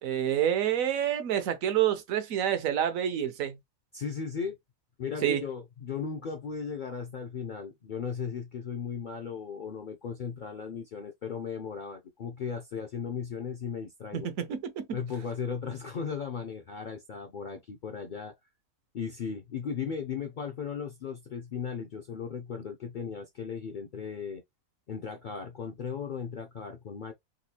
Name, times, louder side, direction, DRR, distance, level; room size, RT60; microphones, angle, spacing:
voice 1, 0.0-3.6 5.2-5.4 14.1-14.8, right 10 dB, 80° right, 1.1 m, -28 dB
voice 2, 3.9-4.6 5.0-14.3 14.9-18.3 18.9-24.4 24.9-27.1, left 6 dB, 60° left, 0.5 m, -36 dB
4.0 x 2.4 x 2.8 m
omnidirectional pair, 1.4 m